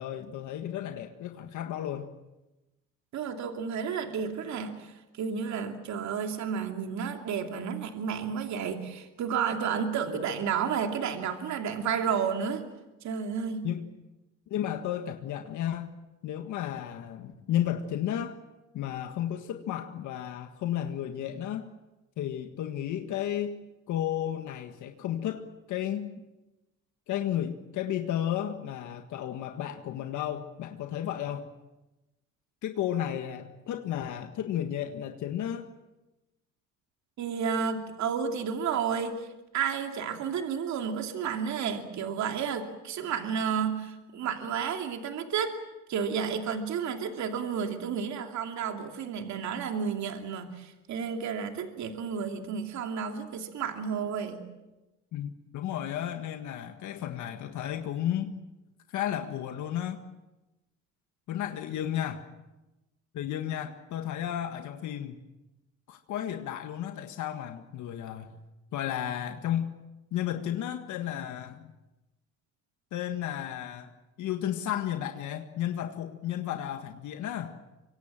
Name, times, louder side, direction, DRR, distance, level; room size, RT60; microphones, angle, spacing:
voice 1, 0.0-2.1 13.6-13.8 14.5-15.9 16.2-18.4 18.7-21.7 22.2-23.6 23.9-26.1 27.1-31.5 32.6-35.7 55.1-58.3 58.9-60.0 61.3-62.2 63.1-65.2 65.9-68.4 68.7-69.7 70.1-71.8 72.9-73.9 74.2-77.6, left 11 dB, 65° left, 6 dB, 1.7 m, -33 dB
voice 2, 3.1-12.6 13.0-13.7 37.2-39.3 39.5-45.5 45.9-54.5, right 7 dB, 60° right, 4 dB, 2.8 m, -31 dB
25.5 x 24.0 x 7.6 m, 1.0 s
cardioid pair, 110°, 32 cm